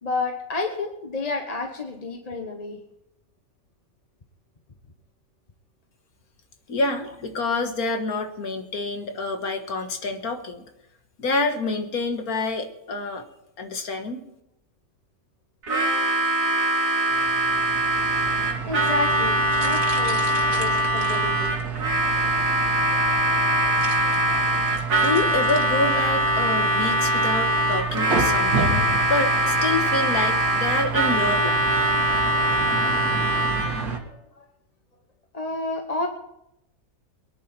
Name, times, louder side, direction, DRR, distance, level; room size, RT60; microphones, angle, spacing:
voice 1, 0.0-2.8 18.6-21.5 34.0-34.5 35.3-36.1, left 3 dB, 30° left, 3 dB, 1.1 m, -30 dB
voice 2, 6.7-10.6 11.2-13.3 13.6-14.2 24.9-31.7, left 3 dB, 80° left, 6 dB, 2.0 m, -27 dB
Harmonica, 15.6-33.9, equal, 65° right, 2.2 m, -23 dB
sound 1, 17.1-34.0, right 6 dB, 90° right, 2.1 m, -30 dB
23.5 x 10.0 x 4.4 m, 0.84 s
omnidirectional pair, 1.5 m